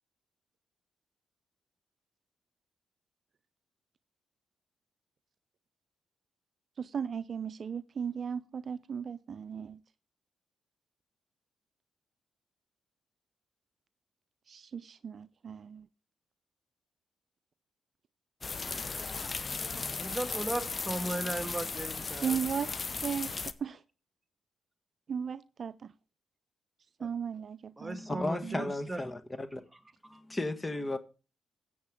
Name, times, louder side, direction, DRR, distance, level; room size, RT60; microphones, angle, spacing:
voice 1, 6.8-9.8 14.5-15.9 22.2-22.7 23.0-23.8 25.1-25.9 27.0-28.7, right 7 dB, 55° right, 0.4 m, -36 dB
sound 1, 18.4-23.5, left 4 dB, 40° left, 0.8 m, -36 dB
voice 2, 19.9-22.4 27.8-29.0 30.1-30.2, right 1 dB, 15° right, 2.1 m, -36 dB
voice 3, 27.9-29.6 30.1-31.0, left 2 dB, 25° left, 1.4 m, -35 dB
14.0 x 8.4 x 3.6 m
supercardioid pair, 55°, 0 cm